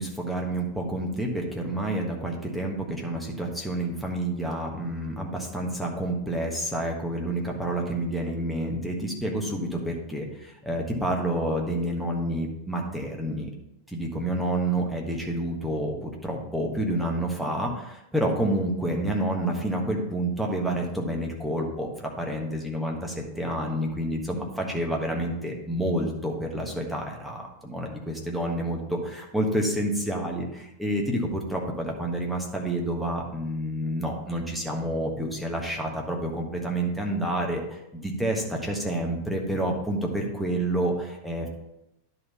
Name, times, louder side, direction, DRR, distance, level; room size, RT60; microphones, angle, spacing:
voice 1, 0.0-13.5 13.9-41.5, right 1 dB, ahead, -1 dB, 1.4 m, -29 dB
10.5 x 4.0 x 5.5 m, 0.85 s
figure-of-eight pair, 90°, 0 cm